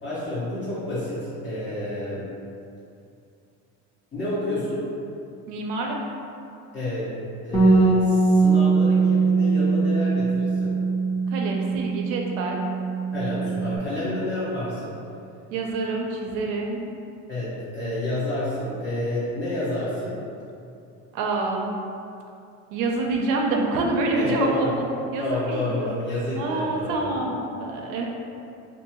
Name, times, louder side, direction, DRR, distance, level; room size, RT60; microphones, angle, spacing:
voice 1, 0.0-2.2 4.1-4.8 6.7-7.1 7.4-10.8 13.1-14.9 17.3-20.2 24.1-24.7 25.2-27.1, left 1 dB, 35° left, -12 dB, 0.9 m, -29 dB
voice 2, 5.5-6.0 11.3-12.6 15.5-16.8 21.1-21.7 22.7-24.9 25.1-25.9 26.4-27.3 27.6-28.1, right 2 dB, 75° right, 0 dB, 0.5 m, -26 dB
Bass guitar, 7.5-13.8, right 3 dB, 10° left, 0.4 m, -21 dB
2.6 x 2.6 x 2.9 m, 2.6 s
cardioid pair, 125°, 33 cm